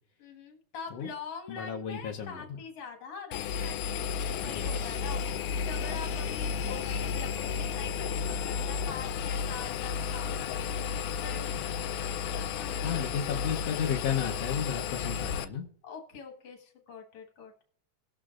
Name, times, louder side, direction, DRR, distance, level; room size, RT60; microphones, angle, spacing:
voice 1, 0.2-5.2 5.6-11.5 12.6-12.9 15.8-17.5, left 6 dB, 50° left, 2 dB, 2.4 m, -44 dB
voice 2, 1.5-2.6 4.4-5.0 6.6-7.0 12.8-15.7, left 7 dB, 65° left, -1 dB, 1.7 m, -34 dB
Engine, 3.3-15.4, left 6 dB, 85° left, 2.1 m, -33 dB
18.5 x 6.9 x 2.4 m, 0.64 s
omnidirectional pair, 3.6 m